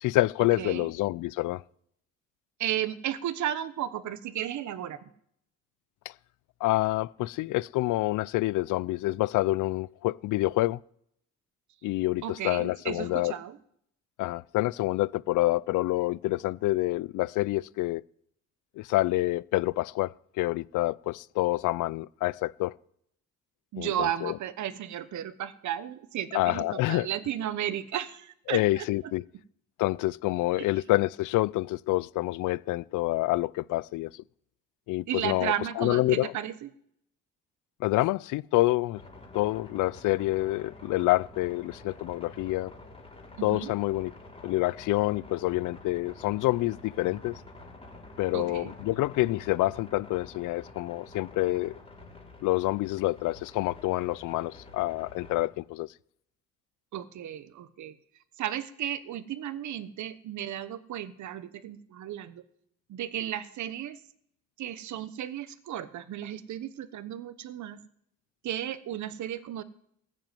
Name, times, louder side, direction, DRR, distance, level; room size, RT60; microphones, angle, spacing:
voice 1, 0.0-1.6 6.6-10.8 11.8-13.3 14.2-18.0 18.8-22.7 23.8-24.4 26.3-27.1 28.5-29.2 29.8-34.1 34.9-36.3 37.8-39.0 39.3-42.7 43.4-44.1 44.4-47.4 48.2-51.7 52.4-55.9, left 18 dB, 85° left, 0.5 m, -27 dB
voice 2, 0.6-0.9 2.6-5.1 12.2-13.6 23.7-29.1 35.1-36.7 43.4-43.7 48.3-48.7 56.9-58.0 58.4-62.4 62.9-64.0 64.6-67.8 68.4-69.6, right 11 dB, 70° right, 1.1 m, -34 dB
sound 1, 38.9-55.5, left 2 dB, 20° left, 4.5 m, -48 dB
14.5 x 7.6 x 9.2 m
cardioid pair, 90°, 30 cm